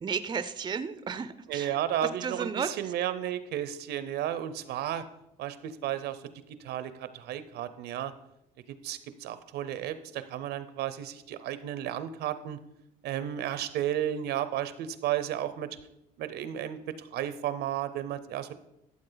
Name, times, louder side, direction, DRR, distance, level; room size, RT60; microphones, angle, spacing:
voice 1, 0.0-2.9, right 6 dB, 25° right, 12 dB, 0.5 m, -34 dB
voice 2, 1.5-5.0 5.4-6.2 6.6-8.1 8.8-12.6 13.0-15.7 16.2-18.5, right 11 dB, 75° right, 13 dB, 0.7 m, -33 dB
13.5 x 7.4 x 4.0 m, 0.85 s
cardioid pair, 110°, 17 cm